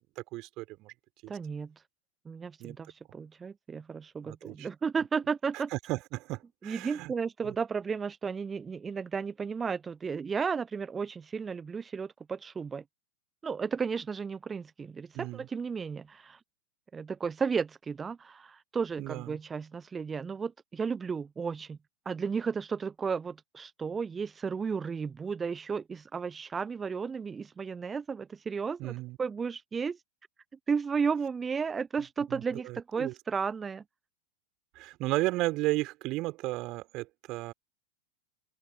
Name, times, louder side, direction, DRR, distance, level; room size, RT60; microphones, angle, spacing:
voice 1, 0.2-0.9 1.2-1.3 2.6-2.8 4.2-4.7 5.5-7.1 7.4-7.6 15.1-15.5 19.0-19.4 28.8-29.2 32.3-33.1 34.8-37.5, right 20 dB, 40° right, 3.9 m, -34 dB
voice 2, 1.3-1.7 2.2-5.7 6.6-12.8 13.4-16.4 16.9-21.8 22.1-30.0 30.7-33.8, right 5 dB, 15° right, 0.9 m, -33 dB
open air
figure-of-eight pair, 90°, 0 cm